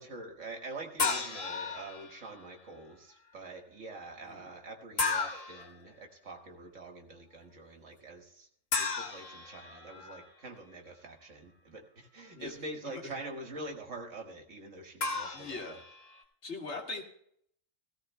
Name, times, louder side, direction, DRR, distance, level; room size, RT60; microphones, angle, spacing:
voice 1, 0.0-8.5 8.8-15.8, right 2 dB, 70° right, 3 dB, 2.0 m, -45 dB
sound 1, 1.0-2.3 5.0-5.7 8.7-10.3 15.0-16.2, left 4 dB, 90° left, 1.9 m, -34 dB
voice 2, 15.3-15.8 16.4-17.0, left 3 dB, 60° left, 2 dB, 2.1 m, -41 dB
17.0 x 14.0 x 2.2 m, 0.68 s
omnidirectional pair, 1.3 m